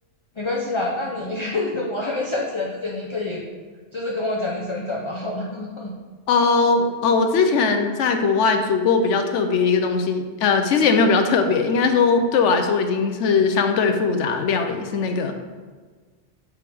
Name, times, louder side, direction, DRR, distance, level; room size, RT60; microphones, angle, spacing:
voice 1, 0.4-3.4 3.9-5.9, left 2 dB, 35° left, -2 dB, 0.5 m, -27 dB
voice 2, 6.3-15.3, left 4 dB, 80° left, 6 dB, 1.0 m, -20 dB
7.0 x 4.7 x 3.5 m, 1.4 s
omnidirectional pair, 1.2 m